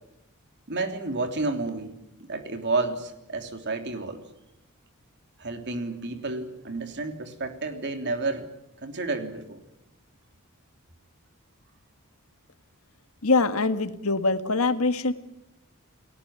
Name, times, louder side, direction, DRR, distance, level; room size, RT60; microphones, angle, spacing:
voice 1, 0.7-1.9 2.2-4.2 5.4-8.5 8.8-9.6, right 3 dB, 50° right, 6 dB, 3.2 m, -30 dB
voice 2, 13.2-15.1, left 3 dB, 75° left, 10 dB, 1.8 m, -23 dB
29.5 x 18.5 x 9.0 m, 0.85 s
head